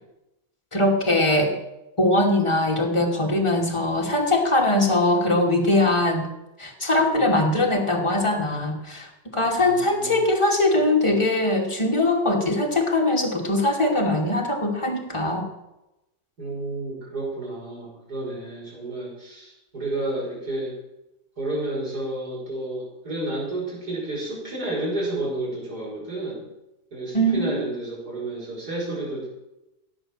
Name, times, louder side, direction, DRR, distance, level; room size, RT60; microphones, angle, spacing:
voice 1, 0.7-1.6 2.0-6.3 6.6-15.5 27.1-27.6, left 1 dB, 15° left, 0 dB, 2.8 m, -21 dB
voice 2, 9.6-10.2 16.4-20.8 21.4-26.4 26.9-29.3, right 2 dB, 65° right, -4 dB, 6.7 m, -31 dB
16.5 x 9.0 x 7.5 m, 0.93 s
omnidirectional pair, 1.8 m